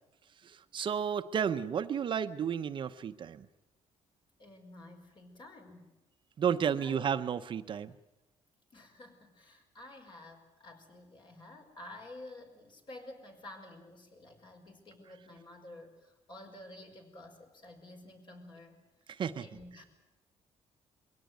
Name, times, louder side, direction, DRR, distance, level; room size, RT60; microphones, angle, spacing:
voice 1, 0.4-3.5 6.4-7.9 19.1-19.5, right 8 dB, 45° right, 10 dB, 0.8 m, -32 dB
voice 2, 4.4-6.0 6.5-7.1 8.7-18.8 19.3-19.8, left 1 dB, 45° left, 4 dB, 4.8 m, -51 dB
23.0 x 17.0 x 9.4 m, 1.0 s
cardioid pair, 125°, 11 cm